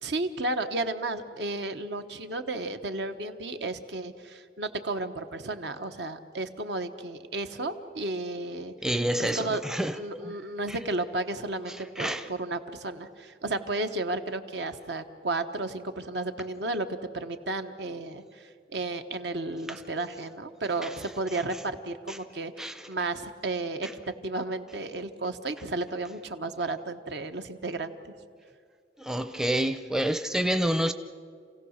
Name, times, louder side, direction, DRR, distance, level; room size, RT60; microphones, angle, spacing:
voice 1, 0.0-8.7 9.2-9.6 9.9-23.9 24.2-28.1, right 2 dB, 75° right, 8 dB, 1.2 m, -33 dB
voice 2, 8.8-10.3 10.7-10.8 11.7-12.3 19.7-19.8 20.8-20.9 21.3-21.4 22.1-22.2 22.6-22.9 23.8-23.9 29.0-30.9, right 1 dB, 5° right, 9 dB, 0.5 m, -29 dB
28.5 x 16.5 x 6.5 m, 2.2 s
head